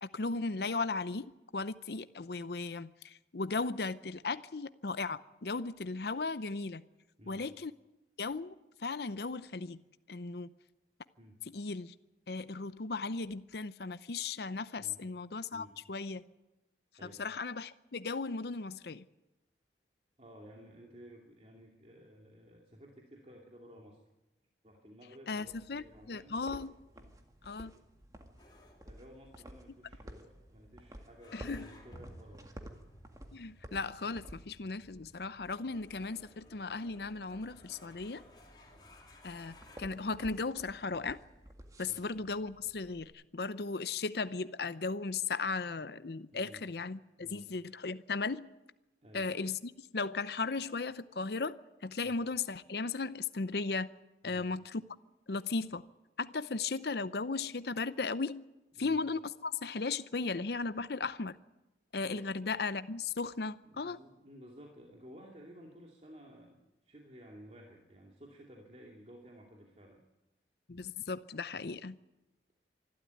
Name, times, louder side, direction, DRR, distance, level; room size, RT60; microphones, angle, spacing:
voice 1, 0.0-6.8 7.3-7.7 8.2-9.8 10.1-10.5 11.5-11.9 12.3-16.3 17.0-19.0 25.3-26.7 27.5-27.7 31.3-31.7 33.3-38.2 39.2-41.2 41.8-48.5 49.1-53.9 54.2-54.8 55.3-55.8 56.2-58.4 58.8-61.4 61.9-64.0 70.7-72.0, left 4 dB, 65° left, 0.7 m, -36 dB
voice 2, 20.2-24.0 24.6-26.3 26.9-27.1 28.8-32.6 38.6-38.9 41.8-42.0 46.3-46.6 47.2-47.5 49.0-49.3 52.0-52.2 54.2-54.5 58.8-59.0 62.0-62.3 63.6-70.0, equal, 35° right, 2.5 m, -54 dB
sound 1, 25.4-43.1, equal, 20° right, 1.9 m, -54 dB
sound 2, 28.4-39.8, left 1 dB, 25° left, 3.2 m, -58 dB
25.0 x 12.5 x 9.5 m
head